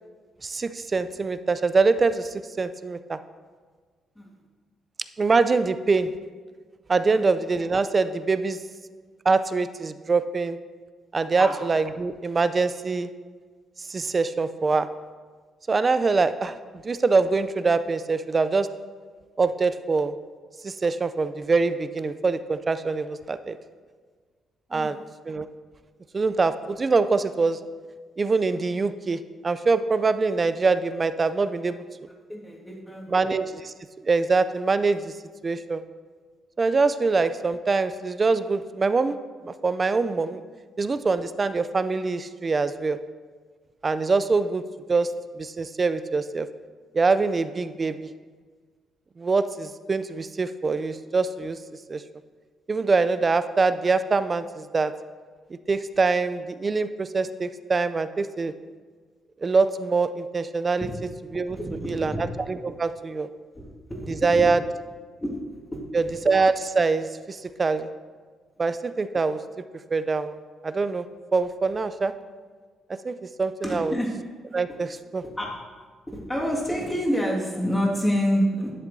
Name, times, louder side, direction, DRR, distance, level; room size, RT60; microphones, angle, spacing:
voice 1, 0.4-2.2 2.6-3.2 5.2-6.1 6.9-8.6 9.3-10.6 11.1-13.1 13.9-14.9 15.7-16.5 16.9-18.7 19.4-20.1 20.6-23.6 24.7-25.0 25.3-25.4 26.1-27.6 28.2-29.2 29.4-31.8 33.1-33.5 34.1-35.0 35.4-35.8 36.6-39.1 39.6-40.4 40.8-43.0 43.8-44.6 44.9-45.1 45.6-46.5 46.9-47.9 49.2-51.6 51.9-52.0 52.7-54.9 55.7-58.5 59.4-60.9 61.3-61.6 62.0-62.1 62.6-63.3 64.2-64.6 66.2-67.1 67.6-67.9 68.6-69.4 69.9-70.4 70.6-71.0 71.3-72.1 73.1-73.9 74.5-74.9 75.1-75.2, right 4 dB, 35° right, 12 dB, 0.4 m, -23 dB
voice 2, 24.7-25.1 32.3-33.6 60.8-60.9 61.6-62.2 63.9-64.5 65.2-66.1 73.6-74.1 75.4-75.5 76.1-78.8, equal, 10° left, -2 dB, 1.8 m, -28 dB
11.0 x 7.2 x 2.7 m, 1.5 s
cardioid pair, 90°, 0 cm